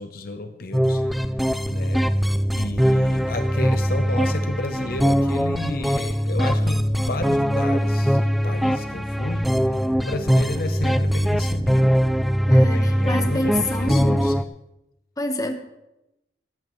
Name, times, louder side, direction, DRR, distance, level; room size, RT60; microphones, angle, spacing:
voice 1, 0.0-12.0 12.5-14.3, left 2 dB, 55° left, 8 dB, 0.8 m, -33 dB
sound 1, 0.7-14.4, equal, ahead, 0.3 m, -21 dB
voice 2, 12.5-14.3 15.2-15.5, left 1 dB, 20° left, 5 dB, 1.3 m, -27 dB
17.5 x 13.5 x 3.2 m, 0.90 s
head